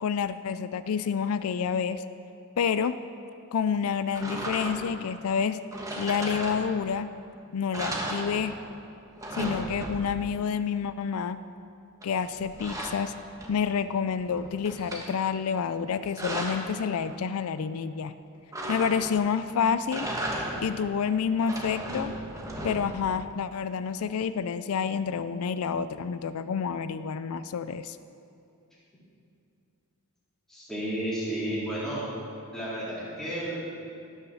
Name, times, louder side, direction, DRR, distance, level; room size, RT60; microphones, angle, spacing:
voice 1, 0.0-2.0 2.6-3.0 3.5-5.6 6.0-7.1 7.5-8.5 9.3-11.4 12.0-13.1 13.5-18.1 18.7-20.1 20.6-22.1 22.6-28.0, left 6 dB, 75° left, 13 dB, 0.4 m, -28 dB
sound 1, 4.1-5.0 5.7-7.0 7.3-7.4 7.7-8.8 9.0-10.3 12.0-13.8 14.2-15.1 15.8-16.7 18.5-19.3 19.8-20.8 21.3-23.1, right 1 dB, 15° right, 1.3 m, -35 dB
voice 2, 30.5-32.0 32.5-33.6, right 1 dB, ahead, -9 dB, 3.6 m, -32 dB
18.0 x 6.5 x 6.3 m, 2.6 s
head